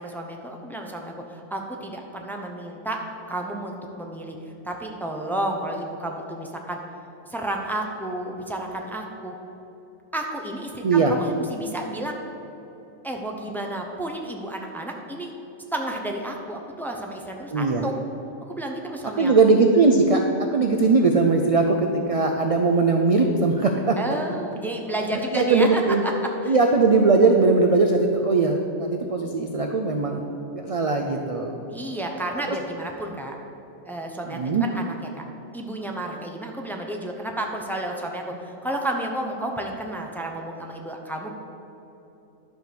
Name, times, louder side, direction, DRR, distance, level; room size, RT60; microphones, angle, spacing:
voice 1, 0.0-3.0 3.3-4.4 4.6-6.8 7.3-9.3 10.1-12.2 13.0-15.3 15.7-17.9 18.5-19.3 24.0-26.1 26.4-26.5 31.7-33.4 33.8-35.2 35.5-41.3, right 1 dB, ahead, 2 dB, 0.6 m, -31 dB
voice 2, 10.8-11.1 17.5-17.9 19.2-20.2 20.5-24.0 25.3-26.0 26.4-30.2 30.5-31.6 32.5-32.6 34.3-34.6, right 3 dB, 55° right, 3 dB, 0.4 m, -20 dB
11.5 x 4.7 x 6.9 m, 3.0 s
omnidirectional pair, 1.4 m